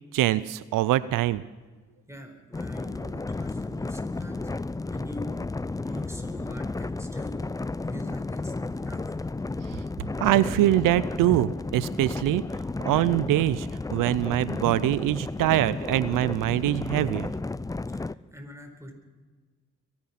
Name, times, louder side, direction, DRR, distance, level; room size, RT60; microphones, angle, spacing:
voice 1, 0.1-1.4 10.2-12.4 12.8-17.3, right 14 dB, 90° right, 18 dB, 0.5 m, -24 dB
voice 2, 2.1-4.5 4.9-5.3 5.8-7.4 7.9-9.1 17.9-18.9, equal, 10° right, 5 dB, 4.3 m, -43 dB
sound 1, 2.5-18.1, left 3 dB, 10° left, 0.4 m, -33 dB
23.0 x 10.5 x 5.8 m, 1.3 s
supercardioid pair, 50°, 31 cm